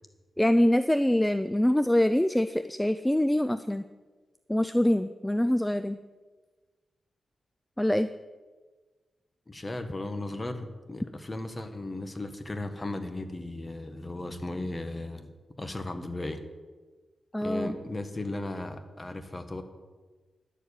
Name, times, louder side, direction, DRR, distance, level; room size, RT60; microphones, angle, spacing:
voice 1, 0.4-3.8 4.5-6.0 7.8-8.1 17.3-17.8, left 1 dB, 5° left, 11 dB, 0.4 m, -24 dB
voice 2, 9.5-15.3 15.6-16.4 17.4-19.6, left 2 dB, 25° left, 7 dB, 1.3 m, -36 dB
11.5 x 7.1 x 8.5 m, 1.4 s
cardioid pair, 90°, 0 cm